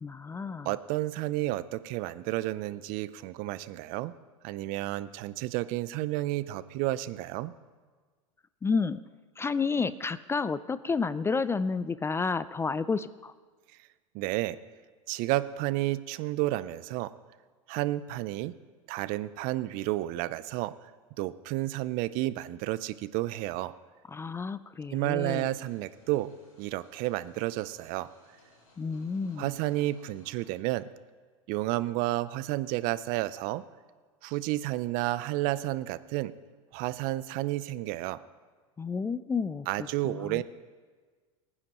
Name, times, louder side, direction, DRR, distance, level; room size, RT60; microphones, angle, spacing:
voice 1, 0.0-0.7 8.6-9.0 9.4-13.3 24.1-25.5 28.8-29.5 38.8-39.7 40.0-40.4, left 4 dB, 15° left, 16 dB, 0.4 m, -30 dB
voice 2, 0.6-4.1 4.4-7.5 14.1-14.6 15.1-17.1 17.7-18.5 18.9-20.7 21.2-23.7 24.9-26.3 26.6-28.1 29.4-30.9 31.5-33.6 34.2-36.3 36.7-38.2 39.7-40.4, right 17 dB, 55° right, 16 dB, 0.5 m, -31 dB
sound 1, 24.9-30.5, left 2 dB, 85° left, 4.0 m, -62 dB
23.5 x 9.9 x 3.0 m, 1.5 s
hypercardioid pair, 95°, 17 cm